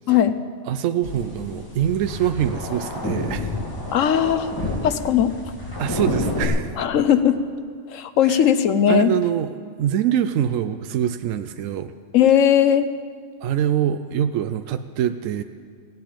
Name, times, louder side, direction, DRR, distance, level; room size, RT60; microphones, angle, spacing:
voice 1, 0.1-0.4 3.9-4.5 4.8-5.5 6.8-7.4 7.9-9.1 12.1-12.9, left 9 dB, 80° left, 11 dB, 1.1 m, -18 dB
voice 2, 0.7-3.5 5.8-6.8 8.2-8.4 8.9-9.5 9.8-11.9 13.4-15.4, right 10 dB, 80° right, 10 dB, 1.0 m, -24 dB
sound 1, 1.0-6.5, left 2 dB, 15° left, 1.9 m, -29 dB
17.0 x 8.1 x 8.8 m, 2.1 s
omnidirectional pair, 1.3 m